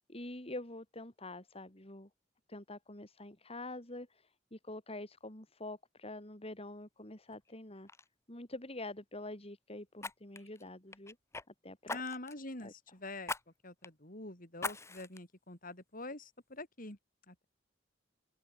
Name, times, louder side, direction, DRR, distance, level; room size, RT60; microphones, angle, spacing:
voice 1, 0.1-2.1 2.5-7.9 8.3-11.2 11.6-12.0 12.6-12.7, left 2 dB, 30° left, 4.3 m, -46 dB
Fire, 7.3-7.5 7.9-8.1 10.0-11.5 11.9-12.4 13.2-13.4 13.8-13.9 14.6-15.2 15.7-15.8, left 3 dB, 15° left, 0.9 m, -41 dB
voice 2, 11.9-13.3 13.6-17.0 17.3-17.5, left 2 dB, 50° left, 6.7 m, -45 dB
open air
head